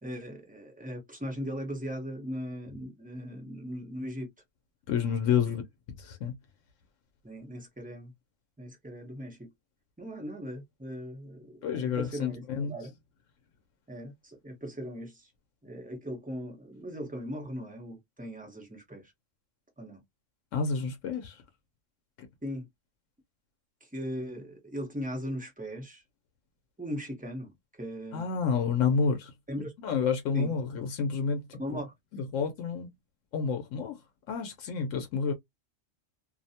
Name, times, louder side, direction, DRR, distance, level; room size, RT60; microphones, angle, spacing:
voice 1, 0.0-4.3 5.4-5.6 7.2-8.1 8.6-9.5 10.0-12.9 13.9-15.3 15.6-19.1 19.8-20.0 22.4-22.7 23.8-26.0 26.8-28.3 29.5-29.7 30.3-30.5 31.6-31.9, equal, 10° right, 0.7 m, -39 dB
voice 2, 4.9-5.6 6.0-6.3 11.6-12.7 20.5-21.4 28.1-29.3 29.8-31.8 32.1-32.9 33.3-34.0 34.3-35.3, left 6 dB, 85° left, 0.9 m, -29 dB
2.6 x 2.1 x 2.7 m
omnidirectional pair, 1.3 m